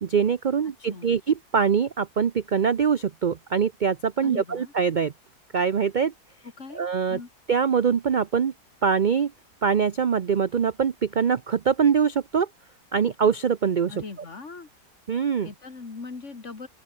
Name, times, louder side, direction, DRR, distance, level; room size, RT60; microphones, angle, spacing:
voice 1, 0.0-5.1 5.5-6.1 6.7-7.2 7.5-8.5 8.8-9.3 9.6-12.5 12.9-13.9 15.1-15.5, right 6 dB, 50° right, 0.5 m, -23 dB
voice 2, 0.8-1.2 4.2-4.7 6.6-6.8 7.1-7.3 13.9-14.7 15.4-16.7, left 4 dB, 50° left, 2.7 m, -40 dB
open air
omnidirectional pair, 1.7 m